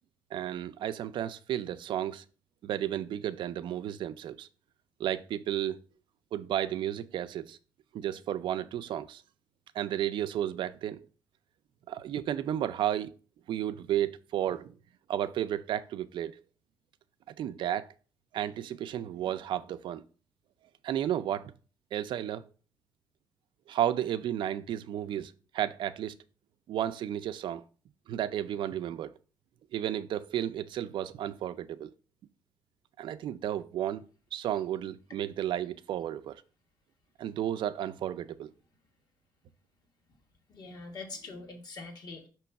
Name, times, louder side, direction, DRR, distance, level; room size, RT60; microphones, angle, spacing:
voice 1, 0.3-2.2 2.6-4.5 5.0-5.8 6.3-7.6 7.9-9.2 9.7-11.1 11.9-13.1 13.5-14.8 15.1-16.3 17.4-17.9 18.3-20.0 20.8-21.5 21.9-22.4 23.7-26.1 26.7-27.6 28.1-29.1 29.7-31.9 33.0-34.0 34.3-36.4 37.2-38.5, right 11 dB, 75° right, 0.4 m, -33 dB
voice 2, 40.5-42.3, left 3 dB, 50° left, 1.3 m, -43 dB
6.1 x 3.0 x 5.7 m
wide cardioid pair, 180°, 8 cm